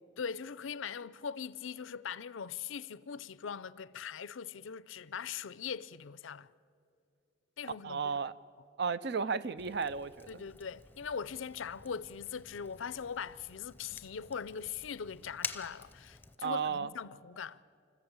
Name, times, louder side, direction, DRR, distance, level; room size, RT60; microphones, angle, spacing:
voice 1, 0.2-6.5 7.6-8.1 10.3-17.6, left 7 dB, 85° left, 0.5 m, -41 dB
voice 2, 7.8-8.3 8.8-10.4 16.4-16.9, right 5 dB, 55° right, 0.6 m, -34 dB
Fire, 9.6-16.4, left 4 dB, 10° left, 0.7 m, -48 dB
26.0 x 14.5 x 8.7 m
head